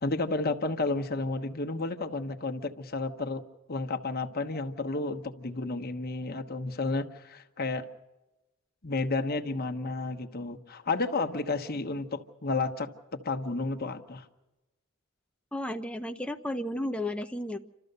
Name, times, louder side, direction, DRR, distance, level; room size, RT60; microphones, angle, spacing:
voice 1, 0.0-3.4 3.7-7.9 8.8-12.9 13.2-14.3, left 3 dB, 45° left, 6 dB, 1.2 m, -31 dB
voice 2, 15.5-17.6, left 1 dB, 5° left, 5 dB, 0.6 m, -33 dB
29.0 x 13.5 x 6.8 m, 1.0 s
head